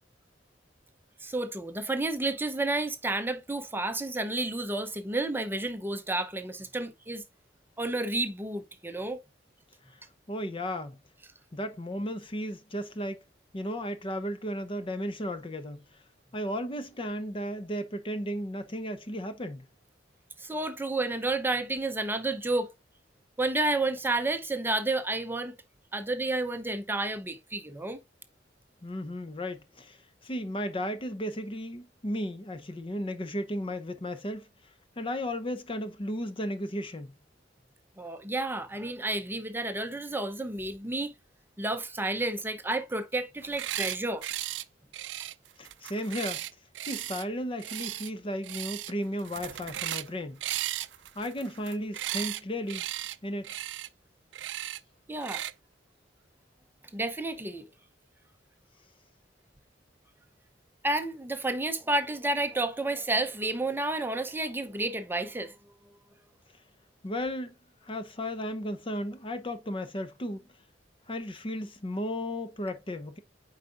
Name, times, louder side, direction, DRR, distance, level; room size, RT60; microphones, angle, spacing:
voice 1, 1.2-7.2 7.8-9.2 20.4-22.7 23.4-25.6 25.9-28.0 38.0-41.1 41.6-44.2 55.1-55.5 56.9-57.6 60.8-65.5, right 2 dB, 10° right, 0.7 m, -31 dB
voice 2, 10.3-11.0 11.5-13.2 13.5-15.8 16.3-19.7 28.8-30.0 30.2-34.5 35.0-37.1 45.6-46.4 46.9-50.4 51.1-52.9 53.2-53.5 67.0-67.5 67.8-70.4 71.1-73.2, equal, 30° left, 0.7 m, -34 dB
sound 1, 43.4-44.0 44.2-44.6 44.9-47.2 47.6-48.1 48.4-48.9 49.2-50.1 50.4-52.4 52.7-53.2 53.4-53.9 54.3-54.8 55.2-55.5, right 14 dB, 70° right, 0.4 m, -36 dB
8.2 x 4.9 x 2.5 m
head